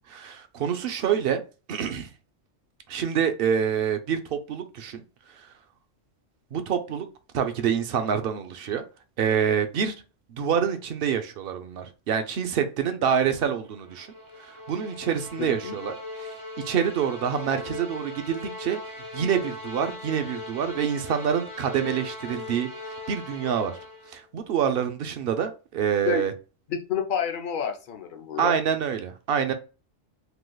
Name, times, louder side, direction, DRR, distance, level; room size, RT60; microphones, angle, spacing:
voice 1, 0.1-1.4 1.7-2.1 2.9-5.0 6.5-7.1 7.3-8.8 9.2-9.9 10.3-14.1 14.4-16.4 16.6-18.8 19.1-22.7 23.1-23.8 24.1-26.3 28.4-29.5, right 8 dB, 60° right, 0.6 m, -26 dB
sound 1, 13.7-24.2, left 2 dB, 15° right, 1.2 m, -39 dB
voice 2, 15.4-15.8 26.0-26.2 26.7-28.6, left 7 dB, 55° left, 0.7 m, -29 dB
3.3 x 3.0 x 2.2 m
omnidirectional pair, 1.3 m